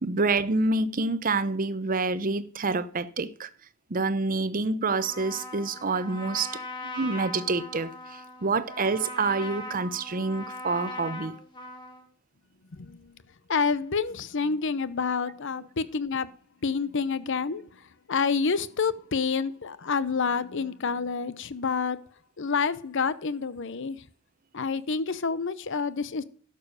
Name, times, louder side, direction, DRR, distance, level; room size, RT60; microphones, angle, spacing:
voice 1, 0.0-3.5 3.9-11.4, right 3 dB, 40° right, 0.8 m, -27 dB
Trumpet, 4.9-12.1, left 1 dB, 20° left, 2.1 m, -40 dB
voice 2, 12.7-13.1 13.5-16.3 16.6-17.6 18.1-22.0 22.4-24.0 24.5-26.2, left 5 dB, 60° left, 0.7 m, -28 dB
12.0 x 6.9 x 6.4 m
head